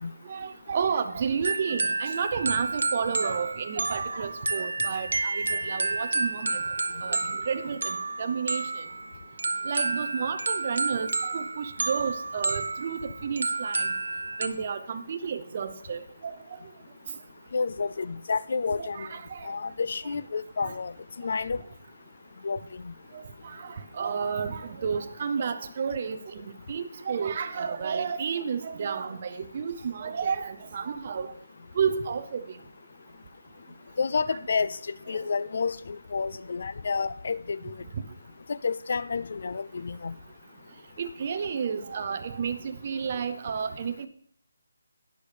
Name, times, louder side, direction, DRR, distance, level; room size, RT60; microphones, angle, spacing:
voice 1, 0.3-6.6 7.0-8.8 9.6-13.9 14.4-16.3 18.8-19.5 20.6-20.7 23.1-31.3 31.7-32.5 41.0-44.1, right 6 dB, 30° right, 9 dB, 0.7 m, -31 dB
sound 1, 1.4-14.5, right 3 dB, 70° right, 0.8 m, -30 dB
voice 2, 17.5-19.0 19.4-20.9 21.2-21.6 22.4-22.6 34.0-37.7 38.5-40.1, left 5 dB, 50° left, 16 dB, 0.3 m, -30 dB
19.5 x 6.5 x 3.4 m, 0.64 s
hypercardioid pair, 170°, 0 cm